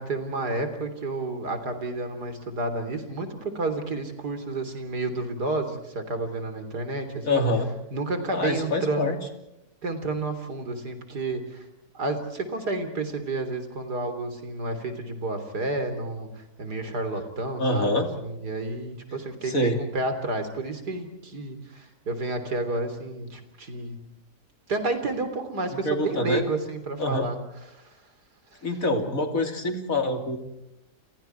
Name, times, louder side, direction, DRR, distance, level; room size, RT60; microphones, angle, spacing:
voice 1, 0.0-7.4 7.9-9.2 9.8-11.7 11.9-24.0 24.7-27.4 27.7-27.9 28.5-28.6, right 2 dB, 75° right, 8 dB, 4.0 m, -30 dB
voice 2, 7.2-7.7 8.3-9.2 17.6-18.1 19.5-19.8 25.8-26.4 27.0-27.3 28.6-30.4, left 1 dB, 55° left, 5 dB, 3.5 m, -25 dB
29.5 x 29.0 x 4.6 m, 0.86 s
omnidirectional pair, 1.7 m